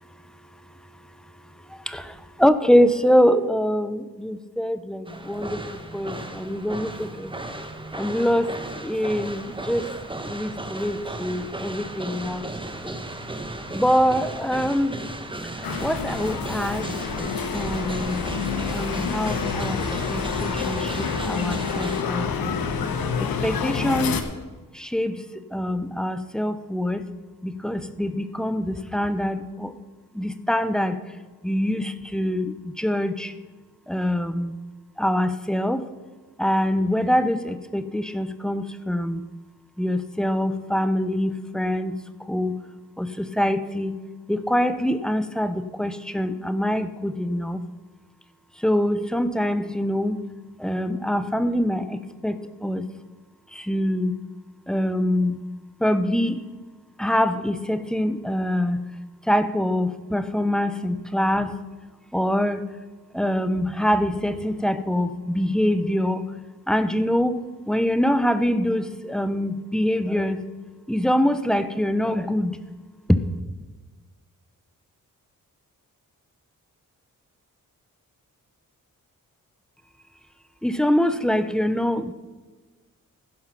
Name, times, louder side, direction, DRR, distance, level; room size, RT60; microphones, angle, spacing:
voice 1, 2.4-5.6 5.9-7.3 8.0-8.5 8.8-9.9 10.3-12.5 12.8-12.9 13.7-15.0 15.8-17.0 17.5-18.3 18.7-22.5 23.4-24.2 24.8-25.2 25.5-27.0 27.4-29.7 30.2-31.0 31.4-33.3 33.9-34.5 35.0-35.8 36.4-39.2 39.8-42.0 42.3-42.6 43.0-44.0 44.3-47.6 48.6-50.2 50.6-52.0 52.2-52.9 53.7-54.2 54.7-55.4 55.8-56.5 57.0-58.8 59.3-61.5 62.1-62.6 63.1-66.2 66.7-67.4 67.7-70.4 70.9-72.6 73.1-73.2 80.6-82.1, equal, ahead, 11 dB, 0.7 m, -24 dB
sound 1, 5.1-22.0, right 2 dB, 15° right, 1.2 m, -35 dB
sound 2, 15.6-24.2, left 6 dB, 90° left, 1.0 m, -28 dB
15.5 x 5.6 x 5.8 m, 1.3 s
cardioid pair, 75°, 35 cm